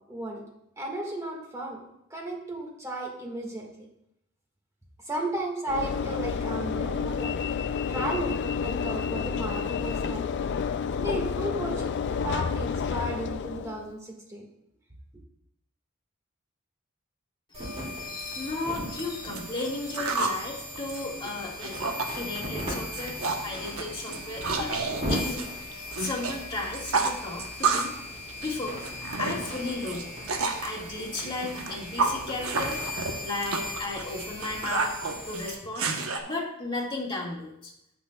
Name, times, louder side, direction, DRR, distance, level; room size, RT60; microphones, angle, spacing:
voice 1, 0.1-0.4 0.8-1.8 2.1-3.8 5.0-7.6 7.9-10.3 11.0-14.4, right 1 dB, 15° right, 0 dB, 1.7 m, -34 dB
Train / Engine / Alarm, 5.7-13.9, left 6 dB, 55° left, 0.3 m, -30 dB
voice 2, 17.5-21.8 22.2-24.8 25.1-28.0 28.4-28.8 29.2-30.1 30.6-32.8 33.2-34.9 35.3-35.9 36.3-37.7, left 2 dB, 25° left, -3 dB, 1.9 m, -34 dB
sound 1, 17.5-35.5, left 1 dB, 30° right, 3.5 m, -38 dB
sound 2, 18.3-18.4 18.8-20.4 20.8-22.1 22.4-22.7 22.9-23.5 23.8-26.4 26.6-28.0 28.3-30.7 31.2-36.2, right 4 dB, 80° right, 1.0 m, -30 dB
16.0 x 6.1 x 2.3 m, 0.79 s
head